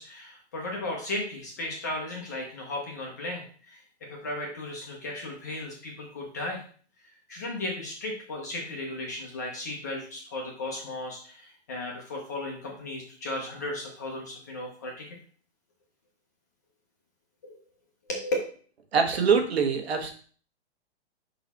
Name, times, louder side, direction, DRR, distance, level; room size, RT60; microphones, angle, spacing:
voice 1, 0.0-3.8 4.1-6.6 7.3-15.1 17.4-17.6 18.1-18.4, left 1 dB, 15° left, 0 dB, 0.5 m, -35 dB
voice 2, 18.9-20.1, right 6 dB, 65° right, 5 dB, 1.4 m, -23 dB
5.8 x 4.0 x 4.0 m, 0.43 s
hypercardioid pair, 170°, 34 cm